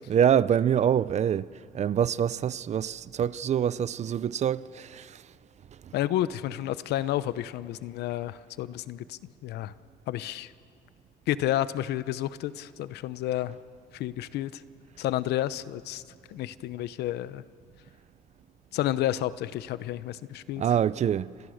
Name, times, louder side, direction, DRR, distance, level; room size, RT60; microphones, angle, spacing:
voice 1, 0.1-1.5 1.7-5.2 20.6-21.3, right 9 dB, 40° right, 0.6 m, -25 dB
voice 2, 5.9-9.7 10.1-10.5 11.3-13.6 13.9-14.6 15.0-16.0 16.3-17.4 18.7-20.6, left 13 dB, 75° left, 0.8 m, -30 dB
29.5 x 24.5 x 6.5 m
cardioid pair, 110°, 17 cm